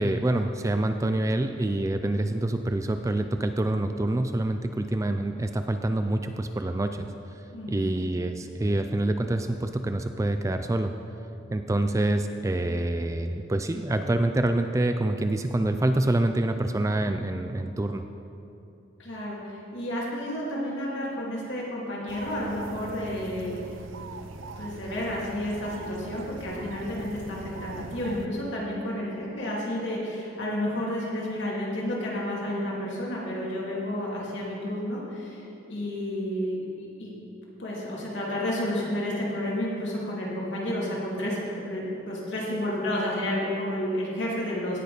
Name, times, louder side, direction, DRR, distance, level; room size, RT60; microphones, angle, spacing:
voice 1, 0.0-7.1 7.7-10.9 11.5-18.0, right 1 dB, 15° right, 7 dB, 0.3 m, -26 dB
voice 2, 7.5-7.9 19.0-23.5 24.6-35.4 35.7-37.1 37.6-41.4 41.6-44.8, left 1 dB, 65° left, -5 dB, 2.8 m, -31 dB
sound 1, 22.1-28.3, right 3 dB, 75° right, 0.5 m, -41 dB
17.5 x 6.7 x 5.0 m, 2.9 s
head